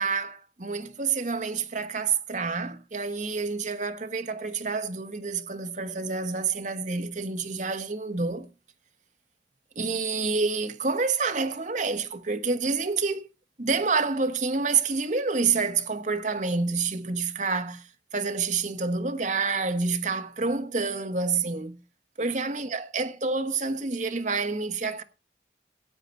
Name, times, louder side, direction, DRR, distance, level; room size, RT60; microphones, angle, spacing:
voice 1, 0.0-8.5 9.8-13.3 13.6-17.8 18.1-21.8 22.2-25.0, right 4 dB, 45° right, 1.3 m, -28 dB
16.0 x 8.4 x 4.4 m
head